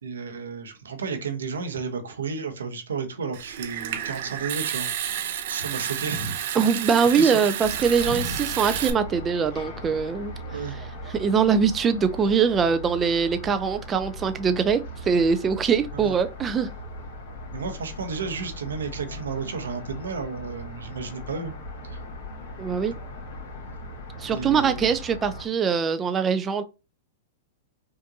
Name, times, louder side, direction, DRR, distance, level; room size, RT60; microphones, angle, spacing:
voice 1, 0.0-4.9 5.1-6.3 7.1-7.4 8.1-8.4 10.5-10.7 15.9-16.1 17.5-21.5 21.9-22.0 24.3-24.9, right 5 dB, 90° right, 0.9 m, -32 dB
Water tap faucet / Sink (filling or washing) / Trickle dribble, 3.3-8.9, right 10 dB, 65° right, 0.6 m, -31 dB
voice 2, 6.5-10.3 10.7-10.8 11.1-16.7 22.6-22.9 24.2-26.6, right 6 dB, 20° right, 0.4 m, -23 dB
sound 1, 7.6-25.5, left 1 dB, 60° left, 1.7 m, -39 dB
5.0 x 2.5 x 2.8 m
hypercardioid pair, 120°, 0 cm